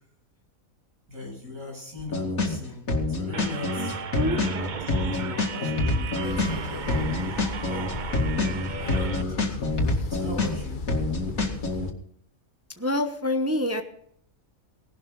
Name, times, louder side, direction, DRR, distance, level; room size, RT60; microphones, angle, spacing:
voice 1, 1.1-8.0 8.8-9.6 10.1-10.8, left 2 dB, 85° right, -2 dB, 8.1 m, -39 dB
sound 1, 2.0-2.6 2.9-6.6 6.9-10.6 10.9-11.9, left 2 dB, 85° left, 2.7 m, -26 dB
sound 2, 3.3-9.2, right 6 dB, 45° right, 0.7 m, -36 dB
voice 2, 3.8-4.4 12.8-13.8, left 1 dB, 15° right, 6 dB, 0.8 m, -27 dB
sound 3, 6.2-11.9, left 4 dB, 40° left, 1.0 m, -36 dB
18.0 x 12.0 x 3.9 m, 0.70 s
omnidirectional pair, 1.4 m